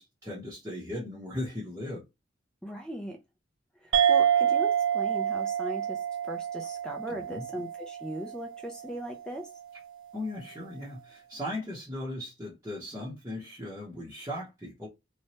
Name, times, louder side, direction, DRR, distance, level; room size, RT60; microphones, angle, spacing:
voice 1, 0.0-2.1 7.1-7.4 10.1-14.9, left 1 dB, 15° right, 0.8 m, -38 dB
voice 2, 2.6-3.2 3.8-9.5, right 1 dB, 5° left, 0.4 m, -39 dB
sound 1, 3.9-8.8, right 9 dB, 70° right, 0.4 m, -27 dB
3.0 x 2.2 x 2.7 m
head